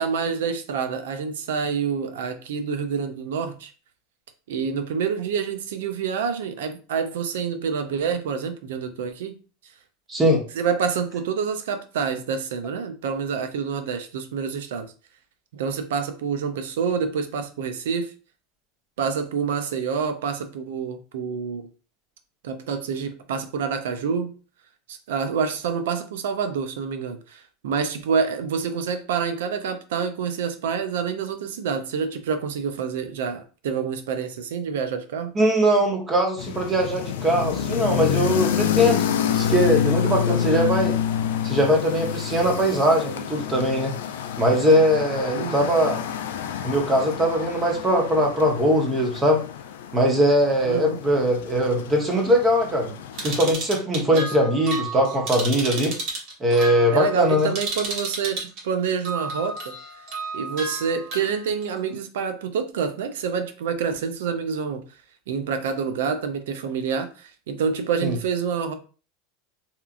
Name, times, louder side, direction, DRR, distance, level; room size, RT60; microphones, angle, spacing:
voice 1, 0.0-3.7 4.5-9.3 10.5-14.9 15.5-18.1 19.0-21.7 22.4-24.3 24.9-35.3 45.3-45.7 50.6-51.0 54.0-54.3 56.9-59.7 60.3-64.8 65.3-68.7, right 6 dB, 85° right, 0.4 m, -27 dB
voice 2, 10.1-10.4 35.3-40.9 41.4-43.9 44.4-46.0 46.6-49.4 49.9-52.9 53.2-55.9 56.4-57.5 68.0-68.1, equal, 20° right, 0.8 m, -21 dB
sound 1, 36.4-53.5, left 9 dB, 85° left, 0.3 m, -28 dB
sound 2, 53.1-58.6 59.0-61.7, right 3 dB, 60° right, 1.1 m, -32 dB
2.9 x 2.4 x 2.4 m
supercardioid pair, 115°, 0 cm